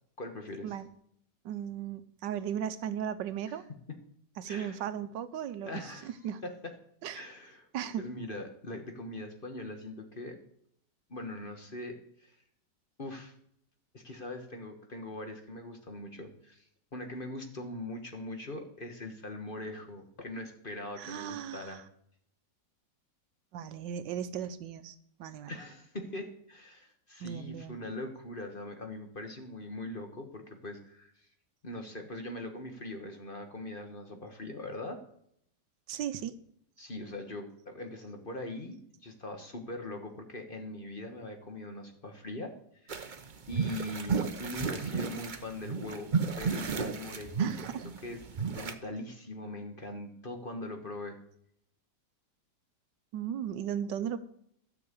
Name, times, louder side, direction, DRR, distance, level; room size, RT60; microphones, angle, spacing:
voice 1, 0.2-0.8 3.9-4.0 4.5-4.8 5.6-6.2 6.4-6.7 7.1-7.7 8.0-10.4 11.1-12.3 13.0-13.3 13.9-21.8 25.5-31.3 31.6-35.0 36.8-42.5 42.8-43.1 43.5-47.8 48.0-51.2, left 1 dB, 30° left, 5 dB, 1.4 m, -41 dB
voice 2, 1.4-3.6 4.4-6.4 7.0-7.3 7.7-8.1 21.0-21.8 23.5-25.5 27.2-27.8 35.9-36.4 47.4-47.9 53.1-54.2, right 9 dB, 80° right, 13 dB, 1.4 m, -36 dB
sound 1, 42.9-48.7, right 5 dB, 40° right, 0.7 m, -33 dB
13.0 x 6.3 x 8.2 m, 0.70 s
omnidirectional pair, 1.9 m